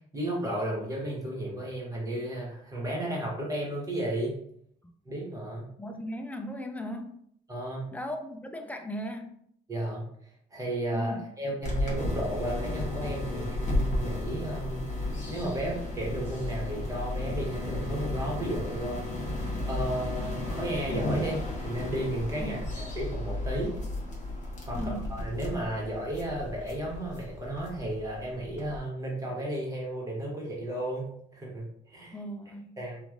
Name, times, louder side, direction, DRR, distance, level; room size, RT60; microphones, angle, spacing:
voice 1, 0.1-4.3 5.0-5.7 7.5-7.9 9.7-10.1 10.5-14.9 15.3-19.0 19.7-23.7 24.7-32.1 32.8-33.0, right 1 dB, 15° right, -3 dB, 1.2 m, -33 dB
voice 2, 5.8-7.2 7.9-9.4 10.9-11.3 22.4-22.6 24.7-25.2 32.1-32.7, equal, 10° left, 5 dB, 0.3 m, -37 dB
sound 1, 11.6-28.8, left 1 dB, 40° left, 1.0 m, -33 dB
3.1 x 2.4 x 2.4 m, 0.69 s
cardioid pair, 95°, 19 cm